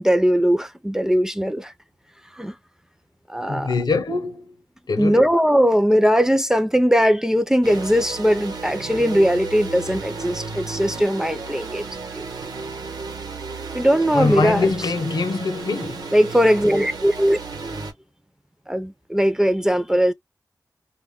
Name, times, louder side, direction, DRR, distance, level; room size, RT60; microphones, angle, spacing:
voice 1, 0.0-1.7 2.4-2.5 3.3-3.7 5.0-11.9 12.1-12.2 13.7-14.7 16.1-17.4 18.7-20.1, equal, 5° right, 0.3 m, -19 dB
voice 2, 3.5-4.5 4.9-5.2 14.1-16.1, left 4 dB, 85° left, 0.7 m, -23 dB
sound 1, 7.6-17.9, right 4 dB, 70° right, 0.9 m, -33 dB
2.2 x 2.0 x 3.5 m
wide cardioid pair, 105°, 7 cm